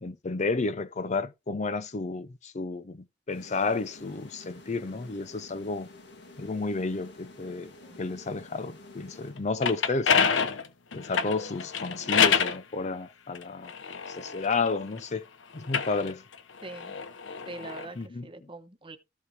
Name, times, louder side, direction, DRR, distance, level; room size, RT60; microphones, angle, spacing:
voice 1, 0.0-5.9 6.4-7.7 8.0-10.3 10.9-15.2 15.5-16.2 18.0-18.3, left 3 dB, 40° left, 0.6 m, -32 dB
sound 1, 3.3-9.9, left 2 dB, 65° left, 1.6 m, -50 dB
sound 2, 9.4-12.6 13.3-15.0 15.6-17.9, left 6 dB, 90° left, 0.9 m, -27 dB
voice 2, 16.6-17.0 17.5-18.0 18.2-19.0, right 2 dB, 30° right, 1.1 m, -43 dB
14.0 x 5.0 x 3.2 m
head